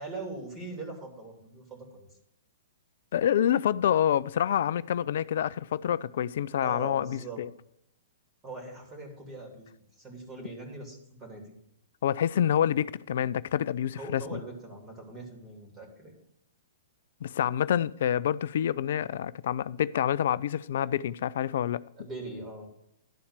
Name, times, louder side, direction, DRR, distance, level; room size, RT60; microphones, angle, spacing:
voice 1, 0.0-2.1 6.6-7.4 8.4-9.7 10.0-11.6 14.0-16.2 22.0-22.7, right 2 dB, 20° right, 3.0 m, -41 dB
voice 2, 3.1-7.5 12.0-14.4 17.2-21.8, left 10 dB, 60° left, 0.3 m, -27 dB
11.5 x 4.3 x 8.0 m
hypercardioid pair, 120°, 0 cm